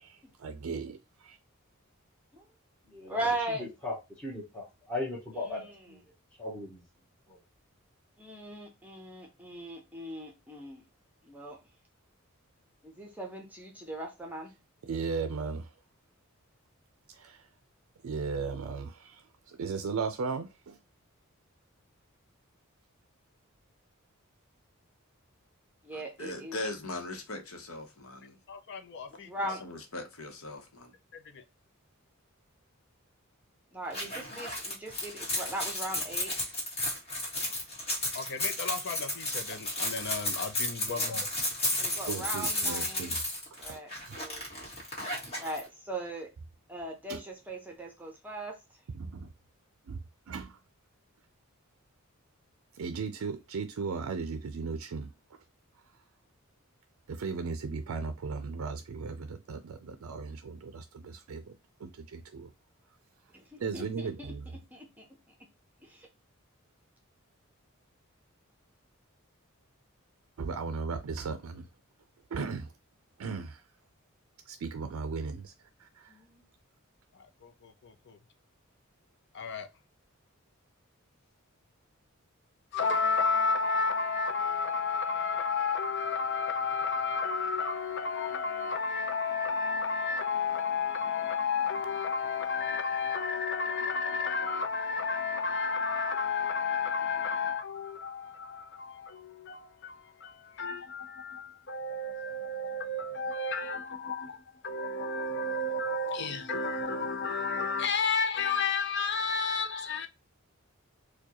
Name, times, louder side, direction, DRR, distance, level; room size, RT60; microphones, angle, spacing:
voice 1, 0.0-1.4 14.8-15.7 17.1-17.4 18.0-20.8 42.1-43.2 43.6-43.8 44.0-44.2 45.4-45.5 47.1-47.2 48.9-49.3 49.9-50.0 50.3-50.6 52.7-55.1 57.1-61.5 61.8-62.5 63.6-64.5 70.4-71.7 72.3-72.7 73.2-73.6 74.5-75.5 75.8-76.1, right 4 dB, 85° right, 0.4 m, -36 dB
voice 2, 3.1-3.6 5.4-5.8 8.2-10.8 11.3-11.6 12.8-14.5 25.8-26.6 29.3-29.6 33.7-36.3 40.8-41.1 41.8-43.2 43.6-44.4 45.4-46.3 46.7-48.6 63.3-64.3 64.7-65.0 65.8-66.1 76.1-76.4, right 1 dB, 10° right, 0.8 m, -39 dB
voice 3, 3.8-6.0 6.4-6.8 7.3-7.4, left 2 dB, 10° left, 1.0 m, -37 dB
voice 4, 25.9-28.4 29.4-30.9, left 2 dB, 80° left, 0.9 m, -40 dB
voice 5, 28.5-29.5 31.1-31.4 38.1-41.3 77.1-78.2 79.3-79.7 82.7-110.1, left 4 dB, 55° left, 0.6 m, -32 dB
sound 1, 33.9-45.6, left 1 dB, 30° left, 1.6 m, -33 dB
4.5 x 2.2 x 2.9 m
head